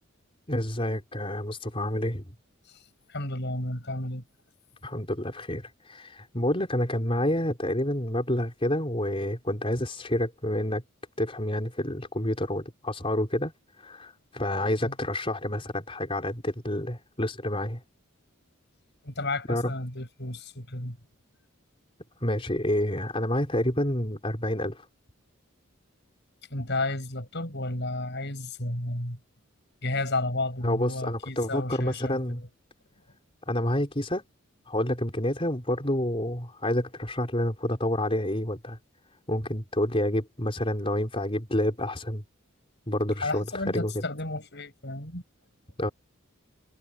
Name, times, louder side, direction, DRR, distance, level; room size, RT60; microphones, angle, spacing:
voice 1, 0.5-2.3 4.8-10.8 11.2-13.5 13.8-17.8 19.5-19.7 22.2-24.8 30.6-32.4 33.5-34.2 34.7-38.8 39.3-42.2 42.9-44.0 45.8-45.9, left 1 dB, 25° left, 4.6 m, -28 dB
voice 2, 3.1-4.2 14.8-14.9 19.0-21.0 26.5-29.2 29.8-32.5 43.2-45.2, left 2 dB, 55° left, 7.7 m, -32 dB
head